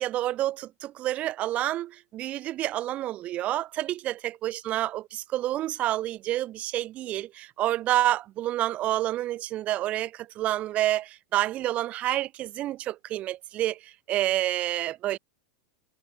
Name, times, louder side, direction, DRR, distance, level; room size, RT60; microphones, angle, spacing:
voice 1, 0.0-15.2, right 14 dB, 25° right, 2.3 m, -29 dB
supercardioid pair, 170°, 5 cm